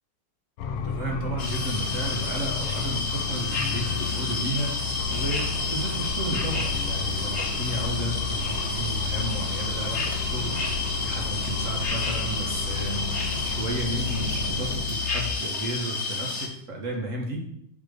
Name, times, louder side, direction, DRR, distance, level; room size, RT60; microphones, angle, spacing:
sound 1, 0.6-15.3, left 7 dB, 75° left, 1.7 m, -33 dB
voice 1, 0.7-4.8 5.1-10.5 11.0-17.4, right 1 dB, 40° right, 0 dB, 1.6 m, -33 dB
sound 2, 1.4-16.5, left 3 dB, 40° left, 1.1 m, -31 dB
sound 3, 4.8-14.8, right 1 dB, 75° right, 3.5 m, -37 dB
6.6 x 4.7 x 5.2 m, 0.73 s
omnidirectional pair, 2.4 m